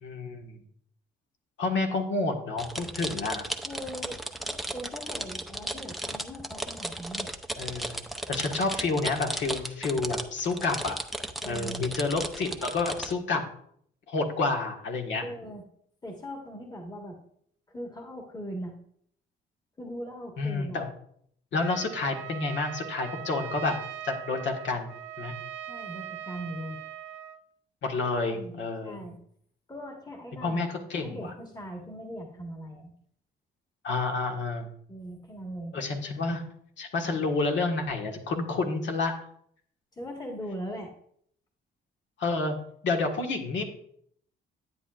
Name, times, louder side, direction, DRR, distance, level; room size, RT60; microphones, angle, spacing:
voice 1, 0.0-0.6 1.6-3.5 7.6-8.0 8.3-11.0 11.5-13.4 14.1-15.2 20.4-20.9 21.5-23.8 24.0-25.3 27.8-29.0 30.4-31.3 33.8-34.7 35.7-36.4 36.8-39.1 42.2-42.6 42.8-43.7, left 3 dB, 70° left, 2 dB, 1.7 m, -29 dB
sound 1, 2.6-13.1, right 1 dB, ahead, 0.7 m, -35 dB
voice 2, 3.7-7.3 11.4-11.8 15.2-15.6 16.0-17.2 17.7-18.8 19.8-20.8 25.7-26.8 28.3-28.5 28.8-29.2 29.7-30.6 31.0-32.9 34.9-35.8 40.0-40.9, equal, 20° left, 1 dB, 1.6 m, -40 dB
Trumpet, 21.5-27.4, right 11 dB, 80° right, 0.6 m, -41 dB
10.5 x 8.9 x 2.5 m, 0.67 s
cardioid pair, 90°, 20 cm